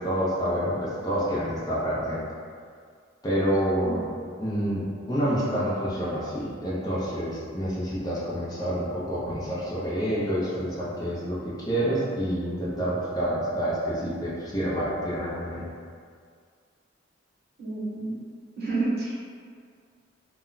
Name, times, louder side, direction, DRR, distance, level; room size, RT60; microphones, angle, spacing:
voice 1, 0.0-2.2 3.2-4.1 4.4-15.7, equal, 20° left, -8 dB, 0.5 m, -28 dB
voice 2, 17.6-18.2 18.6-19.2, right 3 dB, 55° right, -9 dB, 0.9 m, -29 dB
2.2 x 2.1 x 3.7 m, 2.1 s
head